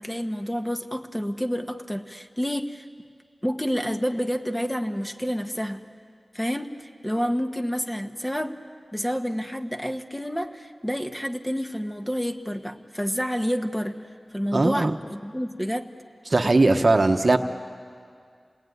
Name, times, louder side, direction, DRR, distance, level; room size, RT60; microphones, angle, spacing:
voice 1, 0.0-2.9 3.4-5.8 6.3-8.6 8.9-14.0 14.3-15.9, equal, 10° left, 5 dB, 1.3 m, -29 dB
voice 2, 14.5-14.9 16.3-17.4, right 2 dB, 45° right, 7 dB, 1.1 m, -19 dB
28.0 x 19.5 x 9.5 m, 2.2 s
wide cardioid pair, 70°, 0 cm